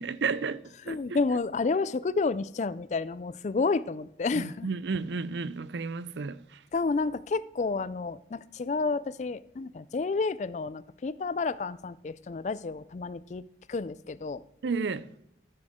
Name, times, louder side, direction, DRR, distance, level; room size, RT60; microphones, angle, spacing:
voice 1, 0.0-1.2 4.3-6.6 14.6-15.1, right 4 dB, 80° right, 0.5 m, -32 dB
voice 2, 0.9-4.7 6.7-13.4 13.7-14.4, left 4 dB, 40° left, 0.3 m, -30 dB
14.0 x 7.8 x 3.6 m
head